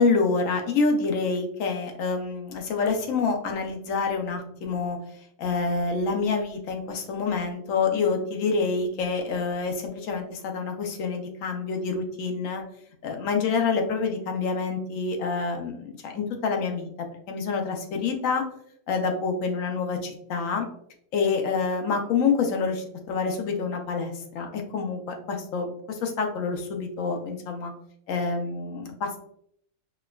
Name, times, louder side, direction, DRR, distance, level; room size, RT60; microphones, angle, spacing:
voice 1, 0.0-5.0 5.4-12.6 13.0-18.4 18.9-20.7 21.1-27.7 28.1-29.2, left 4 dB, 80° left, 3 dB, 1.0 m, -27 dB
4.3 x 2.3 x 2.2 m, 0.70 s
omnidirectional pair, 1.4 m